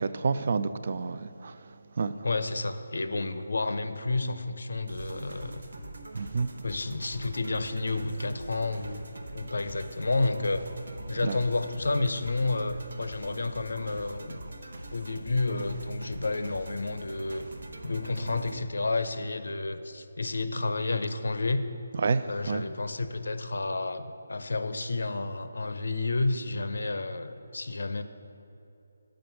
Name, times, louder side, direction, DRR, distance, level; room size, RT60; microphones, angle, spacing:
voice 1, 0.0-1.5 2.0-2.1 6.1-6.5 11.2-11.4 22.0-22.6, right 4 dB, 40° right, 12 dB, 0.3 m, -29 dB
voice 2, 2.2-5.6 6.6-10.6 11.1-14.4 14.9-17.5 17.8-21.6 22.3-28.0, left 3 dB, 80° left, 10 dB, 0.6 m, -30 dB
sound 1, 4.9-18.6, right 2 dB, 80° right, 0.9 m, -43 dB
7.7 x 5.1 x 7.0 m, 2.7 s
hypercardioid pair, 175°, 0 cm